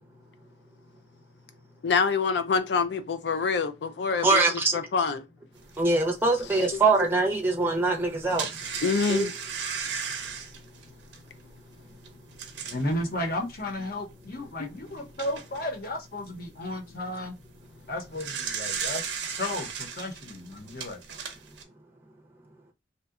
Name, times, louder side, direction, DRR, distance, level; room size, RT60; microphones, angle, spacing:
voice 1, 1.8-5.2 6.7-6.8 8.8-9.3, left 5 dB, 70° left, 0.4 m, -26 dB
voice 2, 4.2-4.8 5.8-8.5 9.1-9.3, right 3 dB, 10° right, 0.5 m, -23 dB
sound 1, 5.7-5.8 6.4-6.5 8.0-12.9 13.6-13.7 14.1-14.2 14.8-15.7 17.8-21.6, right 6 dB, 80° right, 0.6 m, -35 dB
voice 3, 12.7-17.3 17.9-19.0 19.4-21.0, left 1 dB, 55° left, 0.8 m, -33 dB
2.7 x 2.1 x 2.3 m
head